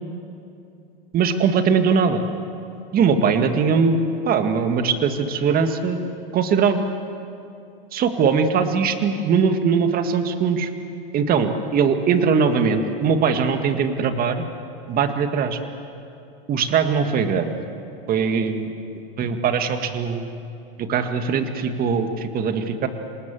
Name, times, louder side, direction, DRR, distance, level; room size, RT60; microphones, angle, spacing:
voice 1, 1.1-2.3 2.9-6.0 6.3-6.9 7.9-10.7 11.1-14.4 14.9-15.6 16.5-17.5 18.1-18.7 19.2-20.3 20.8-22.9, right 5 dB, 30° right, 7 dB, 2.0 m, -21 dB
27.5 x 19.0 x 7.7 m, 2.7 s
hypercardioid pair, 115°, 30 cm